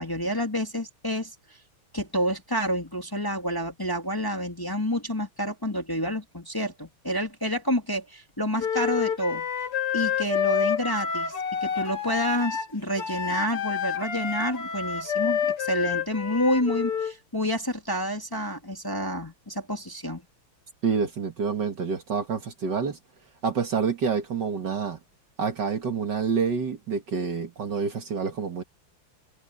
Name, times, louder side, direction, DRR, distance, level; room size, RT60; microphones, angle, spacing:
voice 1, 0.0-1.3 1.9-9.5 9.9-20.2, equal, 10° left, 2.0 m, -29 dB
Wind instrument woodwind instrument, 8.6-17.1, left 8 dB, 80° left, 3.1 m, -28 dB
voice 2, 20.8-23.0 23.4-25.0 25.4-28.6, right 5 dB, 55° right, 2.2 m, -27 dB
omnidirectional pair, 2.4 m